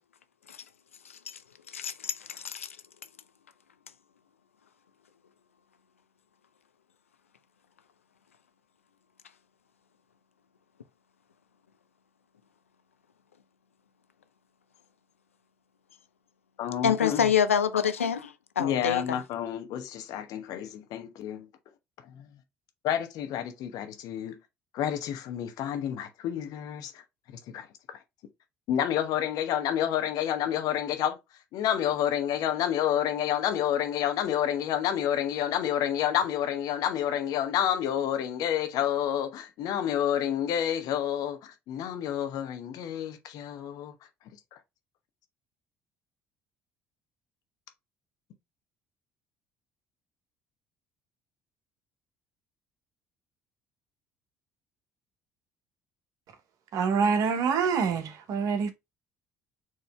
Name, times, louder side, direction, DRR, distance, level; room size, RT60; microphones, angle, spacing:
voice 1, 1.7-2.7 16.8-19.2, left 7 dB, 90° left, 0.4 m, -27 dB
voice 2, 16.6-17.3 18.6-21.5 22.1-22.3 22.8-24.4 24.7-26.9 27.3-27.7 28.7-31.2 31.5-43.9, left 10 dB, 60° left, 0.9 m, -29 dB
voice 3, 56.7-58.7, right 6 dB, 55° right, 0.8 m, -26 dB
4.6 x 3.1 x 3.2 m
figure-of-eight pair, 55°, 7 cm